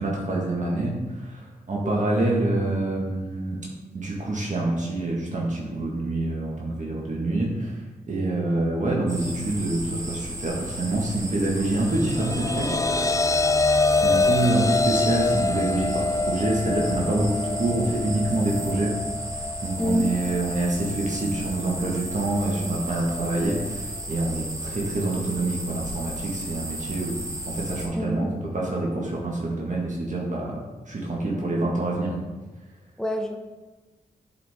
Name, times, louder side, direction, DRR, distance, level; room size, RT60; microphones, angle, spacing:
voice 1, 0.0-3.6 3.9-7.8 8.1-12.8 13.9-18.9 19.6-28.2 28.5-30.6 30.9-32.1, right 2 dB, 55° right, -3 dB, 1.5 m, -26 dB
sound 1, 9.1-27.9, right 1 dB, 20° right, 1.7 m, -35 dB
sound 2, 11.7-24.1, left 3 dB, 20° left, 0.4 m, -27 dB
voice 2, 19.8-20.1 27.9-28.3 33.0-33.4, equal, 5° left, 3 dB, 1.0 m, -26 dB
8.1 x 4.9 x 3.6 m, 1.2 s
cardioid pair, 50°, 15 cm